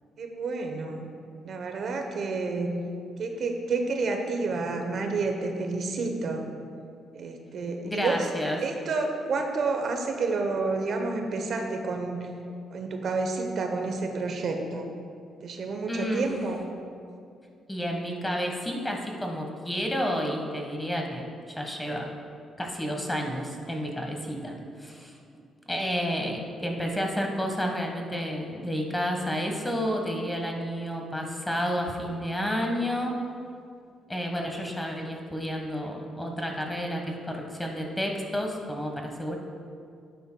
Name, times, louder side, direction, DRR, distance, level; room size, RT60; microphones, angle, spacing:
voice 1, 0.2-1.1 1.4-2.8 3.2-6.5 7.1-8.3 8.6-12.3 12.7-14.9 15.4-16.6, right 3 dB, 60° right, 4 dB, 0.9 m, -29 dB
voice 2, 7.8-8.6 15.9-16.3 17.7-21.2 21.5-22.0 22.6-24.5 24.8-25.1 25.7-33.2 34.1-39.4, equal, 10° left, 1 dB, 1.4 m, -30 dB
12.0 x 9.4 x 2.3 m, 2.4 s
cardioid pair, 90°, 0 cm